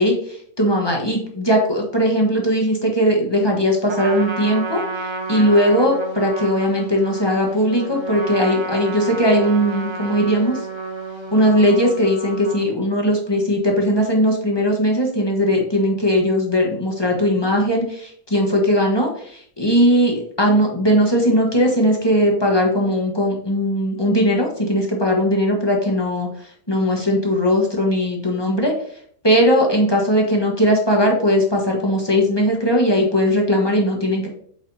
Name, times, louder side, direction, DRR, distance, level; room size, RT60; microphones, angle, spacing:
voice 1, 0.6-4.8 5.3-10.6 11.3-26.3 26.7-28.7 29.2-34.3, equal, 20° left, 0 dB, 1.1 m, -18 dB
Trumpet, 3.9-12.7, right 4 dB, 30° right, 0.5 m, -30 dB
8.0 x 4.9 x 2.7 m, 0.62 s
omnidirectional pair, 1.6 m